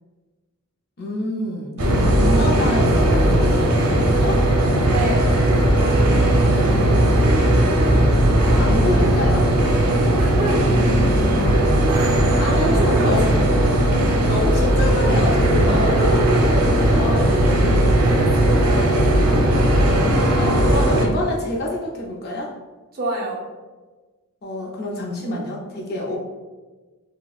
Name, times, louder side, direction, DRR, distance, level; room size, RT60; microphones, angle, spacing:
voice 1, 1.0-1.7 2.1-4.4 8.5-9.5 12.1-13.3 14.3-17.5 20.3-22.5 24.4-26.2, left 1 dB, 45° left, -2 dB, 0.5 m, -27 dB
sound 1, 1.8-21.1, right 1 dB, 80° right, 0.6 m, -17 dB
voice 2, 4.9-6.9 10.2-10.7 12.4-13.1 17.1-19.0 22.9-23.5 26.0-26.2, right 1 dB, 40° right, -3 dB, 0.6 m, -30 dB
4.1 x 2.2 x 2.3 m, 1.3 s
head